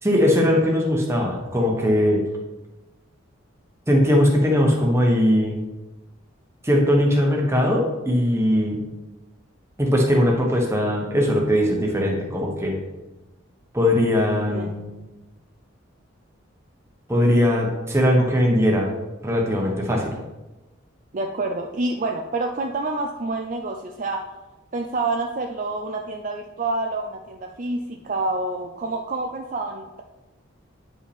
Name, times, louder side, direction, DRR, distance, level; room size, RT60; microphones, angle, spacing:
voice 1, 0.0-2.2 3.9-5.6 6.6-8.8 9.8-12.8 13.7-14.8 17.1-18.9 19.2-20.1, equal, 15° right, -1 dB, 1.1 m, -20 dB
voice 2, 21.1-24.3 24.7-30.0, right 2 dB, 40° right, 2 dB, 0.4 m, -28 dB
9.3 x 5.1 x 3.4 m, 1.1 s
head